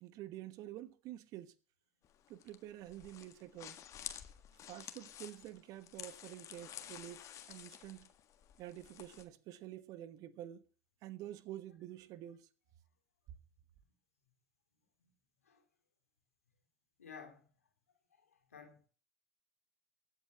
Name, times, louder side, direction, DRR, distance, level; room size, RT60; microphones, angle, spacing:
voice 1, 0.0-1.5 2.3-3.8 4.7-8.1 8.6-10.7 11.0-12.5, right 13 dB, 50° right, 1.3 m, -48 dB
sound 1, 2.0-9.2, left 10 dB, 45° left, 1.6 m, -51 dB
voice 2, 17.0-17.5 18.5-18.9, left 6 dB, 85° left, 2.8 m, -53 dB
24.0 x 8.2 x 3.0 m
hypercardioid pair, 75°, 8 cm